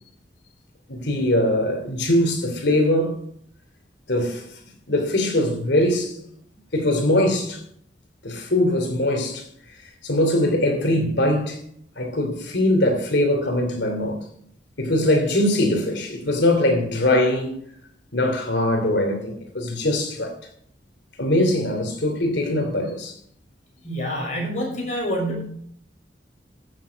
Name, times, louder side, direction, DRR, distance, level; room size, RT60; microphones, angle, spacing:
voice 1, 0.9-3.2 4.1-4.4 4.9-6.2 6.7-7.6 8.2-9.5 10.0-11.6 12.0-14.2 14.8-17.6 18.1-20.3 21.2-23.1, left 1 dB, 70° left, 3.1 m, -21 dB
voice 2, 23.8-25.4, equal, 40° left, 6.2 m, -27 dB
14.5 x 7.6 x 5.3 m
head